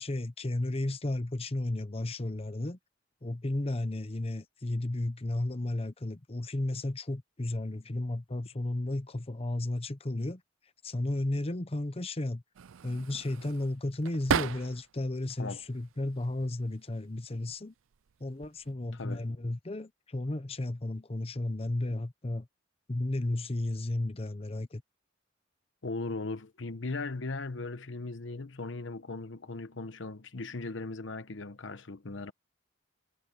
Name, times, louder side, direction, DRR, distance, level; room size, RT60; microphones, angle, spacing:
voice 1, 0.0-2.8 3.2-10.4 10.8-12.4 12.8-17.7 18.2-22.5 22.9-24.8, left 1 dB, 30° left, 0.8 m, -33 dB
sound 1, 12.5-15.0 15.5-16.3 17.2-17.6 17.9-18.7, right 7 dB, 85° right, 0.5 m, -36 dB
voice 2, 18.9-19.2 25.8-32.3, left 3 dB, 70° left, 1.0 m, -38 dB
head